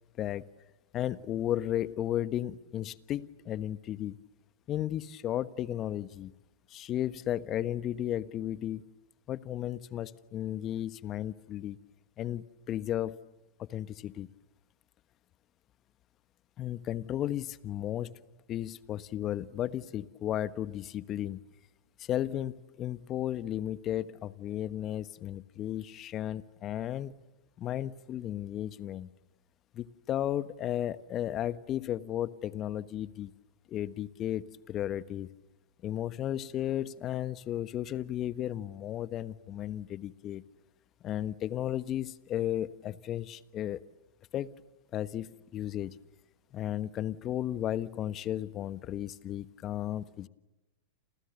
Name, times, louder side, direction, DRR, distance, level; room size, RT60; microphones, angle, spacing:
voice 1, 0.9-4.2 4.7-6.3 6.7-8.8 9.3-11.8 12.2-13.2 13.6-14.3 16.6-18.1 18.5-21.4 22.0-27.1 27.6-29.1 29.7-33.3 33.7-35.3 35.8-40.4 41.0-43.8 44.3-44.5 44.9-45.9 46.5-50.3, left 12 dB, 35° left, 15 dB, 1.3 m, -34 dB
29.5 x 28.5 x 6.8 m, 1.1 s
hypercardioid pair, 105°, 0 cm